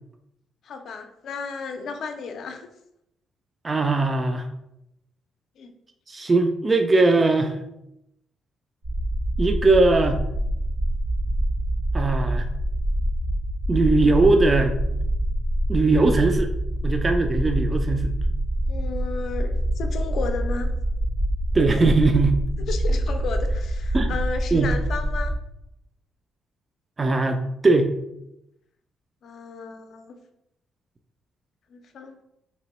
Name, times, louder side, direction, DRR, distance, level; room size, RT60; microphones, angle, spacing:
voice 1, 0.6-2.7 5.6-5.7 13.9-14.1 18.7-20.7 22.7-25.4 29.2-30.2 31.7-32.2, left 4 dB, 65° left, 6 dB, 0.5 m, -33 dB
voice 2, 3.6-4.5 6.1-7.5 9.4-10.2 11.9-12.5 13.7-14.8 15.7-16.5 16.8-18.1 21.5-22.4 23.9-24.1 24.5-24.7 27.0-27.9, right 3 dB, 30° right, 6 dB, 0.3 m, -20 dB
sound 1, 8.8-25.4, right 1 dB, 90° right, 1.1 m, -25 dB
3.5 x 3.0 x 2.9 m, 0.83 s
cardioid pair, 90°, 0 cm